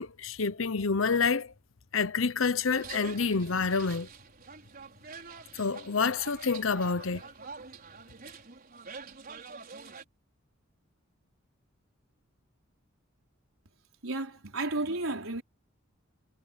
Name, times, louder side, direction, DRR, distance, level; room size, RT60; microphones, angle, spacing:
voice 1, 0.0-1.5 1.9-4.1 5.5-7.2, left 4 dB, 75° left, 0.9 m, -28 dB
sound 1, 2.7-10.0, right 5 dB, 45° right, 5.4 m, -46 dB
voice 2, 14.0-15.4, right 2 dB, 90° right, 4.4 m, -32 dB
head